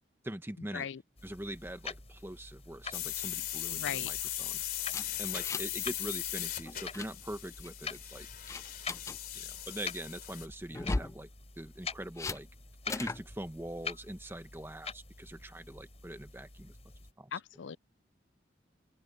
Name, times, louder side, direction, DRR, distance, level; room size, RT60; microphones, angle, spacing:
voice 1, 0.2-0.9 1.2-4.6 5.2-8.3 9.3-11.3 11.6-12.5 12.9-16.8 17.2-17.4, right 1 dB, 10° right, 1.2 m, -43 dB
sound 1, 1.2-17.1, left 5 dB, 35° left, 5.7 m, -46 dB
sound 2, 2.9-10.5, left 13 dB, 50° left, 3.0 m, -38 dB
voice 2, 3.7-4.1 17.3-17.8, left 7 dB, 75° left, 0.5 m, -38 dB
sound 3, 4.9-5.8 6.1-6.3 6.7-7.1 7.6-8.0 8.5-9.2 10.7-11.2 12.2-12.4 12.9-13.2, left 2 dB, 15° left, 0.3 m, -36 dB
open air
head